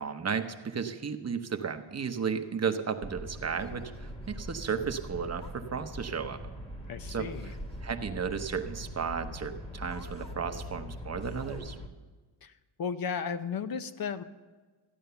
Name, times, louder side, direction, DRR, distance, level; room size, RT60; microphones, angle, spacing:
voice 1, 0.0-6.4 7.1-7.5 7.8-11.8, right 6 dB, 35° right, 7 dB, 0.9 m, -34 dB
sound 1, 3.0-11.9, equal, 10° left, 1.4 m, -42 dB
voice 2, 6.9-7.5 12.4-12.5 12.8-14.2, left 6 dB, 50° left, 10 dB, 0.7 m, -34 dB
14.0 x 10.0 x 6.8 m, 1.4 s
wide cardioid pair, 130°, 44 cm